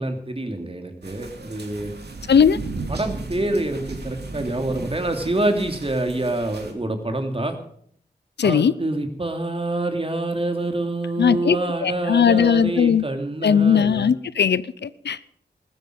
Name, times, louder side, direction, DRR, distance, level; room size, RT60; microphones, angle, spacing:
voice 1, 0.0-1.9 2.9-7.6 8.4-14.1, right 2 dB, 30° right, 2.9 m, -26 dB
sound 1, 1.0-6.7, right 3 dB, 70° right, 2.8 m, -35 dB
voice 2, 2.3-2.6 8.4-8.7 11.2-11.6 11.8-13.0 13.4-15.2, left 7 dB, 75° left, 0.6 m, -18 dB
15.0 x 13.0 x 5.2 m
cardioid pair, 55°, 18 cm